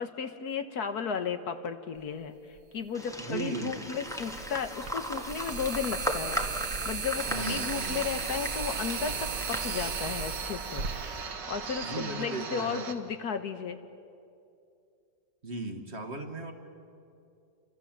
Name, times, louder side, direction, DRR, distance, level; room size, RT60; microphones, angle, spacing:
voice 1, 0.0-6.4 6.9-10.9 11.5-13.8, left 6 dB, 65° left, 9 dB, 1.5 m, -34 dB
sound 1, 2.6-2.7 4.0-11.9, right 5 dB, 60° right, 1.8 m, -36 dB
sound 2, 2.9-10.2, equal, ahead, 1.4 m, -37 dB
voice 2, 3.2-3.9 7.3-8.0 11.8-12.9 15.4-16.5, right 3 dB, 40° right, 6 dB, 1.8 m, -37 dB
sound 3, 7.2-12.9, right 5 dB, 80° right, 2.3 m, -39 dB
29.0 x 25.0 x 7.4 m, 2.5 s
omnidirectional pair, 1.9 m